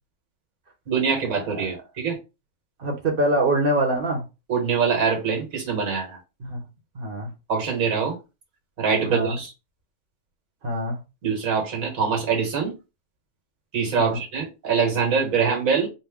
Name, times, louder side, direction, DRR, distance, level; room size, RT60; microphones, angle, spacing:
voice 1, 0.9-2.2 4.5-6.2 7.5-8.2 8.8-9.5 11.2-12.7 13.7-15.9, right 6 dB, 75° right, 1.7 m, -24 dB
voice 2, 2.8-4.2 6.4-6.6 6.9-7.3 9.1-9.4 10.6-11.0 13.9-14.2, right 1 dB, 45° right, 1.0 m, -24 dB
4.1 x 2.1 x 3.4 m
omnidirectional pair, 1.4 m